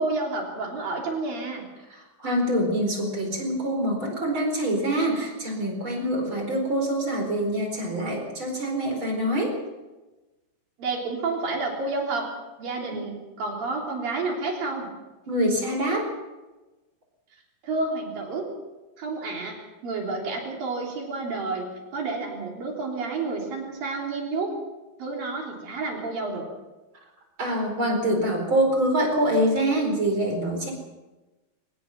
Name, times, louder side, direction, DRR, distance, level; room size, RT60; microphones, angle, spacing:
voice 1, 0.0-1.7 10.8-12.3 12.6-14.9 17.6-18.5 19.0-19.6 19.8-24.5 25.0-26.5, right 3 dB, 65° right, 0 dB, 5.1 m, -30 dB
voice 2, 1.9-9.6 15.3-16.1 27.4-30.7, right 1 dB, 30° right, 2 dB, 4.8 m, -25 dB
23.5 x 19.5 x 5.9 m, 1.1 s
omnidirectional pair, 4.4 m